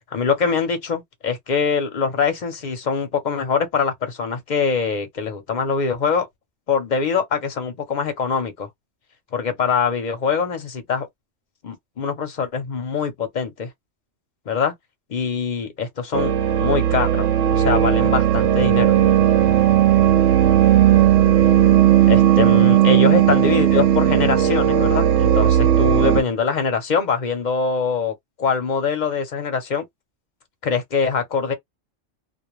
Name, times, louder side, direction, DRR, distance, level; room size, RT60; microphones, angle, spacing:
voice 1, 0.1-6.3 6.7-8.7 9.3-11.1 11.6-13.7 14.5-14.7 15.1-16.3 16.6-19.0 22.1-29.8 30.6-31.5, left 5 dB, 45° left, 0.6 m, -23 dB
sound 1, 16.1-26.2, right 11 dB, 85° right, 0.9 m, -16 dB
2.2 x 2.1 x 3.0 m
omnidirectional pair, 1.3 m